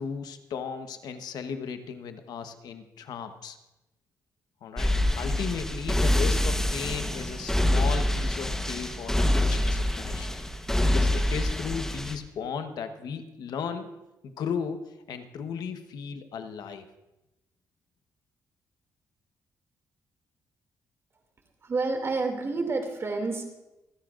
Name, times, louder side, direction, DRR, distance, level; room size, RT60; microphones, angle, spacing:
voice 1, 0.0-3.6 4.6-10.3 10.8-13.9 14.2-16.9, left 6 dB, 75° left, 8 dB, 1.1 m, -36 dB
sound 1, 4.8-12.1, left 1 dB, 5° left, 1.1 m, -26 dB
voice 2, 21.6-23.4, right 3 dB, 40° right, 3 dB, 2.5 m, -29 dB
27.0 x 10.0 x 2.5 m, 0.97 s
cardioid pair, 100°, 7 cm